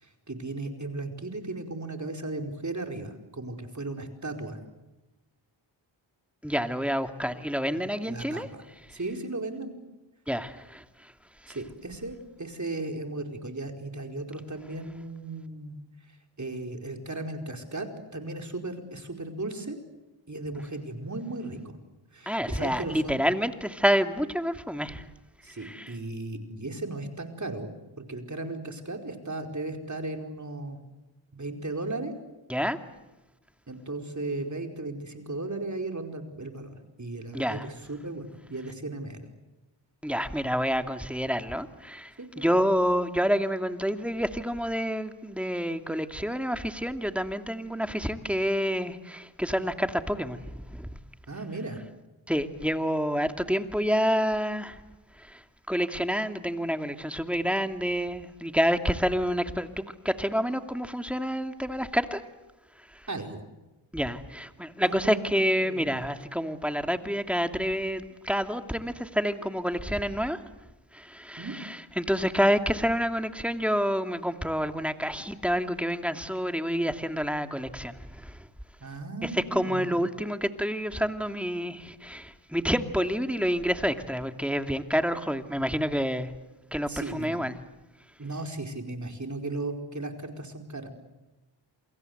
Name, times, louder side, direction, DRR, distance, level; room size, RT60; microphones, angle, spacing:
voice 1, 0.0-4.6 7.7-8.6 8.9-9.7 11.5-15.8 16.4-19.8 20.3-21.8 22.1-23.2 25.4-30.8 31.3-32.1 33.7-39.3 42.2-42.4 51.3-51.8 63.1-63.4 64.8-66.0 71.4-71.6 78.8-80.0 86.9-87.4 88.2-90.9, right 2 dB, 35° right, 4 dB, 4.7 m, -36 dB
voice 2, 6.4-8.5 10.3-10.8 22.3-25.0 25.6-25.9 32.5-32.8 37.3-37.6 40.0-42.1 42.4-50.4 50.7-50.9 52.3-54.8 55.3-55.4 55.7-62.2 63.9-70.4 70.9-78.0 78.2-78.4 79.3-86.3 86.7-87.5, equal, ahead, 7 dB, 2.5 m, -28 dB
28.0 x 25.0 x 8.0 m, 1.1 s
cardioid pair, 45°, 49 cm